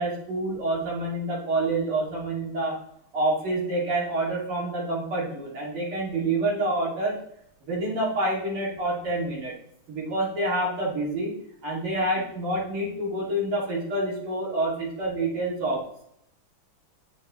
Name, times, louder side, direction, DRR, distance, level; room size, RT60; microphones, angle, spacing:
voice 1, 0.0-2.8 3.1-7.2 7.6-9.5 9.9-11.3 11.6-15.8, right 1 dB, 85° right, -4 dB, 3.5 m, -27 dB
9.3 x 7.0 x 3.1 m, 0.72 s
omnidirectional pair, 2.3 m